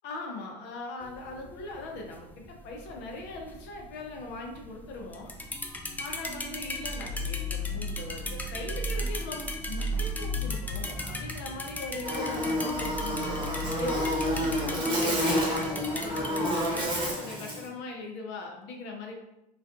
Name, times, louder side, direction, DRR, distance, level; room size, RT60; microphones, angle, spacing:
voice 1, 0.0-5.3 6.0-19.2, left 3 dB, 60° left, 1 dB, 0.7 m, -40 dB
sound 1, 1.0-17.1, left 1 dB, 10° left, 0.3 m, -36 dB
Buzz, 12.0-17.7, equal, 25° right, 1.1 m, -29 dB
2.4 x 2.4 x 2.3 m, 0.89 s
hypercardioid pair, 75°, 20 cm